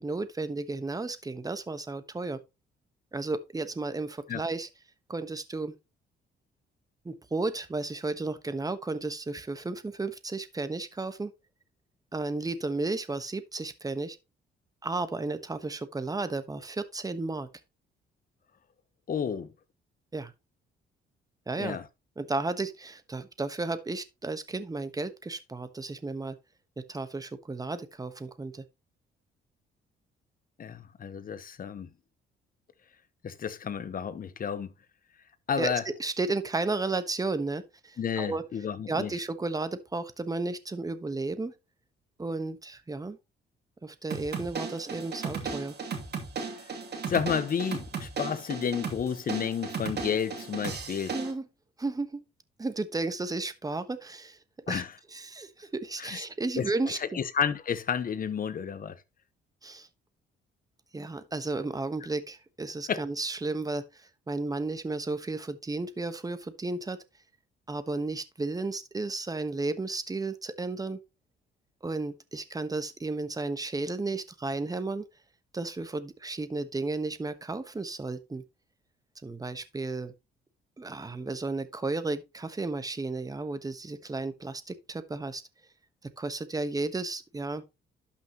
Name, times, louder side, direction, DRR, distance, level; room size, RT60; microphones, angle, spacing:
voice 1, 0.0-2.4 3.1-4.7 5.1-5.7 7.0-11.3 12.1-14.2 14.8-17.5 20.1-20.3 21.5-21.8 22.2-26.4 26.9-28.6 35.6-38.4 38.9-41.5 42.2-43.2 43.8-45.8 51.1-51.5 51.8-52.2 52.6-54.4 54.7-54.8 55.1-57.2 59.6-59.9 60.9-67.0 67.7-71.0 71.8-75.1 75.5-78.4 79.2-80.1 80.8-85.4 86.2-87.6, right 3 dB, 20° right, 1.2 m, -33 dB
voice 2, 19.1-19.5 21.6-21.8 30.6-31.9 33.2-34.7 35.5-35.8 38.0-39.1 47.1-51.1 54.7-54.9 56.0-56.2 56.6-59.0 62.9-63.0, left 7 dB, 45° left, 1.0 m, -31 dB
sound 1, 44.1-51.3, right 5 dB, 55° right, 2.7 m, -36 dB
12.0 x 5.9 x 3.0 m
cardioid pair, 90°, 20 cm